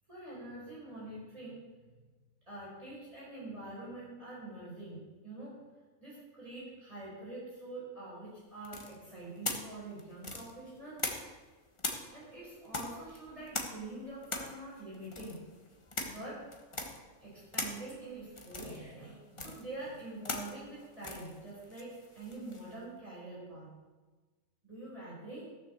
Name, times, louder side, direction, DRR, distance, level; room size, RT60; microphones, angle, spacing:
voice 1, 0.1-1.6 2.5-5.6 6.0-11.0 12.1-15.4 16.0-16.5 17.2-23.7 24.6-25.5, right 2 dB, 25° right, -8 dB, 5.2 m, -45 dB
sound 1, 8.6-11.5 11.8-22.7, left 2 dB, 20° left, 1.2 m, -41 dB
15.0 x 6.9 x 6.8 m, 1.3 s
omnidirectional pair, 1.5 m